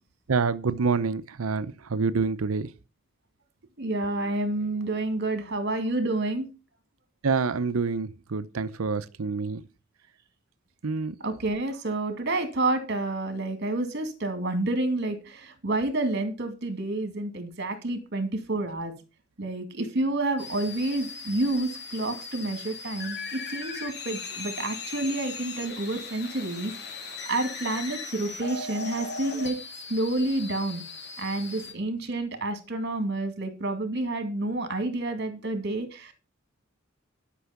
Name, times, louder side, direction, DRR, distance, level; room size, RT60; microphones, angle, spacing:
voice 1, 0.3-2.7 7.2-9.6 10.8-11.1, right 4 dB, 90° right, 0.7 m, -27 dB
voice 2, 3.8-6.5 11.2-18.9 19.4-26.7 27.3-29.6 29.9-30.8 31.2-36.1, right 2 dB, 55° right, 2.4 m, -29 dB
sound 1, 20.4-31.7, left 4 dB, 55° left, 2.5 m, -38 dB
11.5 x 6.1 x 5.8 m
head